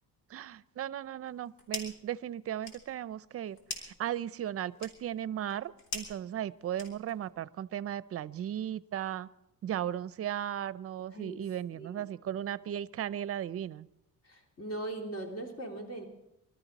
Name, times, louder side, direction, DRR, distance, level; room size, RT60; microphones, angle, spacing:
voice 1, 0.3-9.3 9.6-13.9, right 10 dB, 45° right, 16 dB, 0.6 m, -36 dB
sound 1, 1.2-2.1 2.4-7.3, left 3 dB, 85° left, 3.5 m, -44 dB
voice 2, 11.7-12.1 14.2-16.0, right 1 dB, 50° left, 0 dB, 3.5 m, -40 dB
24.5 x 13.0 x 4.1 m, 0.82 s
cardioid pair, 115°, 34 cm